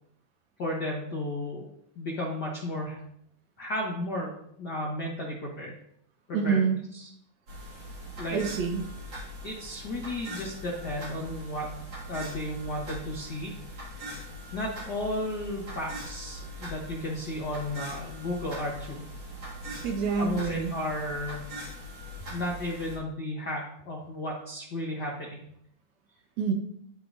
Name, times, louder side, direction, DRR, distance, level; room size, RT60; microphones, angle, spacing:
voice 1, 0.6-1.7 1.9-3.0 3.6-5.7 6.3-6.6 6.9-7.1 8.2-8.4 9.4-11.8 12.1-13.5 14.5-19.0 20.2-21.5 22.3-25.4, left 1 dB, 80° left, -3 dB, 0.9 m, -34 dB
voice 2, 6.3-6.8 8.3-8.9 19.8-20.7 26.4-26.5, right 5 dB, 85° right, 3 dB, 1.5 m, -27 dB
sound 1, 7.5-23.0, equal, 35° right, 2.3 m, -41 dB
13.0 x 4.7 x 2.7 m, 0.71 s
omnidirectional pair, 4.0 m